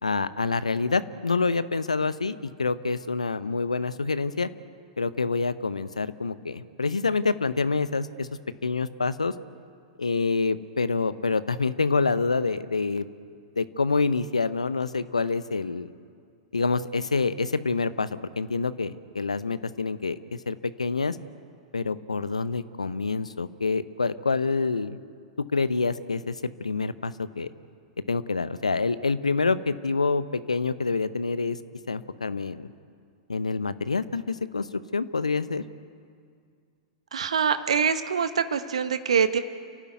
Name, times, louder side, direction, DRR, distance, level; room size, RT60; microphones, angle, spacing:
voice 1, 0.0-4.5 5.0-8.3 8.6-9.3 10.0-13.0 13.6-15.9 16.5-21.2 21.7-25.0 25.5-27.5 28.1-31.6 31.9-32.7 33.3-34.7 34.9-35.6, left 4 dB, 80° left, 14 dB, 0.8 m, -27 dB
voice 2, 37.1-39.4, right 7 dB, 70° right, 11 dB, 1.0 m, -24 dB
30.0 x 12.5 x 9.3 m, 2.2 s
figure-of-eight pair, 100°, 3 cm